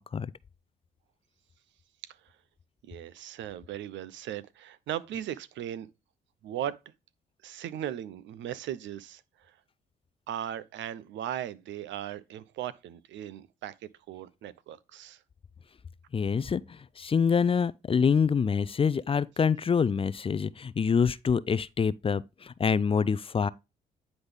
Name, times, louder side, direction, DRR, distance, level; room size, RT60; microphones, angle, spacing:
voice 1, 2.9-5.9 6.4-6.8 7.4-9.5 10.3-13.7 14.1-15.2, right 11 dB, 75° right, 0.6 m, -37 dB
voice 2, 16.1-23.5, left 6 dB, 30° left, 0.4 m, -26 dB
9.7 x 4.0 x 3.4 m
supercardioid pair, 60°, 19 cm